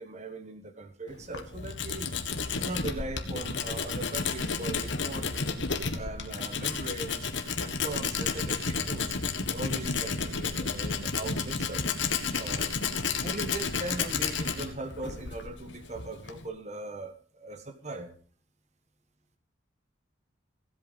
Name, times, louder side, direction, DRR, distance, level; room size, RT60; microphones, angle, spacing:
voice 1, 0.0-2.1 2.5-5.6 5.9-7.3 7.6-9.2 9.5-11.9 12.4-12.7 13.2-18.1, right 2 dB, 35° right, 7 dB, 1.5 m, -39 dB
Tools, 1.1-16.5, left 5 dB, 70° left, 1.5 m, -32 dB
16.0 x 8.1 x 5.4 m, 0.41 s
head